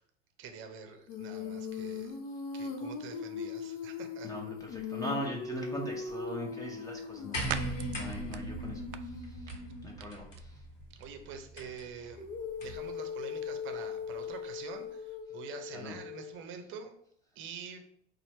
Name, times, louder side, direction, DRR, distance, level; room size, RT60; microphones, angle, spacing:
voice 1, 0.4-2.2 2.5-4.3 10.9-12.2 12.6-16.9 17.3-17.8, right 6 dB, 35° right, 7 dB, 0.8 m, -46 dB
Female singing, 1.1-10.0 12.2-16.4, left 5 dB, 40° left, 0.9 m, -40 dB
voice 2, 4.2-10.6 15.7-16.0, equal, 10° left, -1 dB, 0.8 m, -41 dB
sound 1, 6.3-14.9, right 11 dB, 50° right, 0.4 m, -48 dB
sound 2, 7.3-12.9 14.0-14.1, right 1 dB, 80° left, 1.3 m, -41 dB
4.3 x 2.7 x 4.3 m, 0.65 s
figure-of-eight pair, 85°, 37 cm